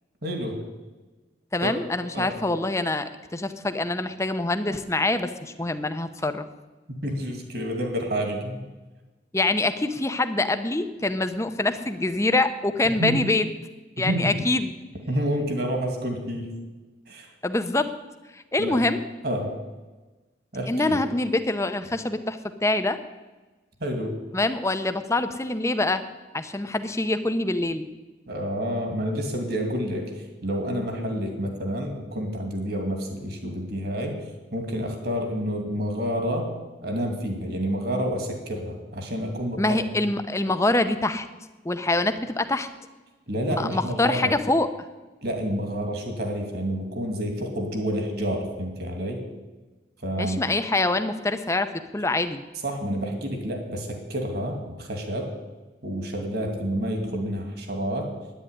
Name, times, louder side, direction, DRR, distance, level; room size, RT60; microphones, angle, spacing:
voice 1, 0.2-0.6 1.6-1.7 2.1-2.3 6.9-8.6 12.8-13.2 14.0-14.3 15.1-16.5 17.1-17.3 18.6-18.8 19.2-19.5 20.5-21.0 23.8-24.2 28.3-30.1 30.4-34.2 34.5-36.5 36.8-39.8 43.3-44.3 45.2-49.2 50.0-50.5 52.6-55.3 55.8-58.1, equal, 55° right, 4 dB, 2.5 m, -29 dB
voice 2, 1.5-6.5 9.3-13.5 14.0-14.7 17.4-17.9 18.3-19.0 20.7-23.0 24.3-26.0 26.3-27.9 39.6-41.3 41.6-42.7 43.6-44.7 50.2-52.4, left 2 dB, 15° left, 9 dB, 0.7 m, -25 dB
10.0 x 9.5 x 9.8 m, 1.2 s
head